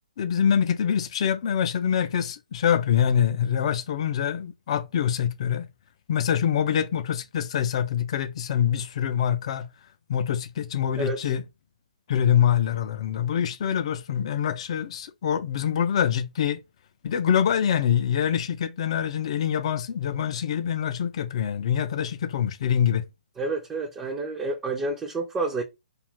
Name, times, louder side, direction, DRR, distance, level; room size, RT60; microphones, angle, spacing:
voice 1, 0.2-5.7 6.1-9.7 10.1-11.4 12.1-16.6 17.0-23.0, left 8 dB, 45° left, 0.5 m, -25 dB
voice 2, 23.4-25.6, right 3 dB, 10° right, 0.5 m, -29 dB
2.4 x 2.4 x 3.3 m
figure-of-eight pair, 130°, 4 cm